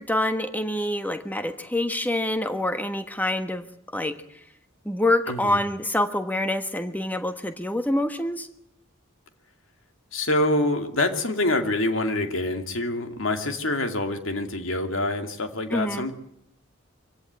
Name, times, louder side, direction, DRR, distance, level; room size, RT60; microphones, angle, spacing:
voice 1, 0.0-3.7 3.9-4.2 4.8-8.5 15.7-16.1, left 1 dB, 10° left, 8 dB, 1.4 m, -26 dB
voice 2, 5.3-5.6 10.1-16.1, left 1 dB, 70° left, 6 dB, 2.4 m, -26 dB
24.5 x 16.5 x 9.2 m, 0.76 s
head